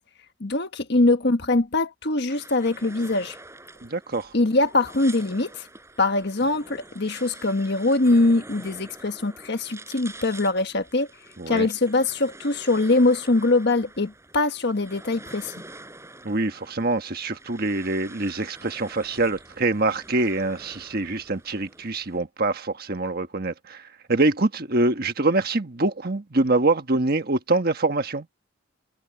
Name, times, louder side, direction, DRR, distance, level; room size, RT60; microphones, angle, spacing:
voice 1, 0.4-3.3 4.3-5.7 6.0-11.1 11.5-15.5, left 2 dB, 55° left, 1.4 m, -22 dB
sound 1, 2.3-22.2, right 2 dB, 15° right, 4.1 m, -46 dB
voice 2, 3.8-4.3 11.4-11.7 16.2-28.3, right 2 dB, 50° right, 1.4 m, -25 dB
head